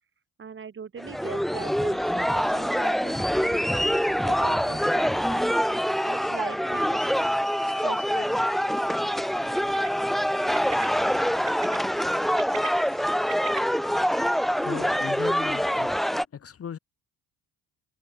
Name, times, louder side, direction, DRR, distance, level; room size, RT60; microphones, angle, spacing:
voice 1, 0.4-5.5 6.0-7.1 7.6-8.4, right 6 dB, 35° right, 6.9 m, -41 dB
sound 1, 1.0-16.2, equal, ahead, 0.9 m, -25 dB
Bird, 9.6-9.9 10.6-10.9 11.5-11.8 12.2-13.6, right 22 dB, 85° right, 6.2 m, -39 dB
voice 2, 14.6-16.1 16.3-16.8, left 8 dB, 40° left, 7.5 m, -38 dB
supercardioid pair, 75°, 34 cm